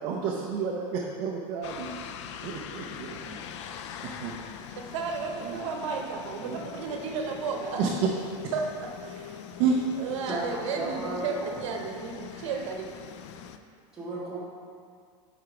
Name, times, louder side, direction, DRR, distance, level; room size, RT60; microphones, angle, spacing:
voice 1, 0.0-1.9 2.4-3.4 4.0-4.4 5.4-5.7 6.4-6.6 7.8-7.9 9.6-9.8, right 6 dB, 35° right, -2 dB, 0.5 m, -30 dB
sound 1, 1.6-13.6, left 8 dB, 70° left, 0.4 m, -42 dB
voice 2, 4.8-7.8 8.5-8.6 9.0-9.4 10.0-12.9, right 5 dB, 85° right, 2 dB, 0.9 m, -33 dB
voice 3, 10.2-11.6 12.3-12.6 13.9-14.4, right 2 dB, 5° right, -11 dB, 1.6 m, -35 dB
5.0 x 4.9 x 5.8 m, 2.2 s
supercardioid pair, 175°, 15 cm